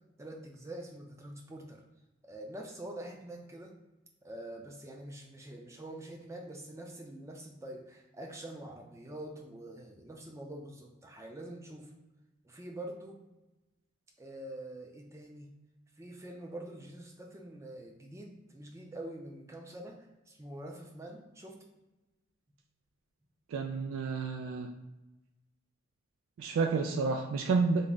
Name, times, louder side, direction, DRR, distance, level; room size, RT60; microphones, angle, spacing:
voice 1, 0.2-1.8 2.2-3.7 4.2-11.9 12.4-13.2 14.2-15.5 16.0-20.0 20.3-21.6, right 1 dB, 15° right, 1 dB, 0.4 m, -45 dB
voice 2, 23.5-24.7 26.4-27.9, right 4 dB, 90° right, 3 dB, 0.3 m, -30 dB
3.4 x 2.1 x 3.8 m, 1.0 s
head